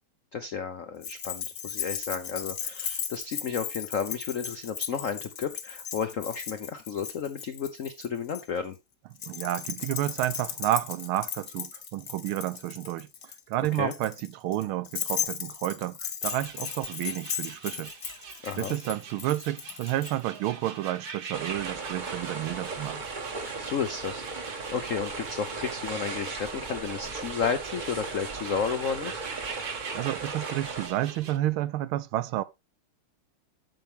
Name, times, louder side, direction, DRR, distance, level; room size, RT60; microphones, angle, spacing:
voice 1, 0.3-8.8 13.8-13.9 18.4-18.8 23.6-29.2, left 6 dB, 75° left, 0.7 m, -32 dB
Keys jangling, 1.0-8.4 9.2-20.1, left 8 dB, 45° left, 1.2 m, -36 dB
voice 2, 9.3-13.1 13.5-17.9 18.6-23.0 29.6-32.4, right 14 dB, 75° right, 1.4 m, -30 dB
sound 1, 16.2-31.4, right 6 dB, 50° right, 1.6 m, -43 dB
sound 2, 21.3-30.9, right 3 dB, 35° right, 0.8 m, -37 dB
8.9 x 7.3 x 3.4 m
omnidirectional pair, 2.4 m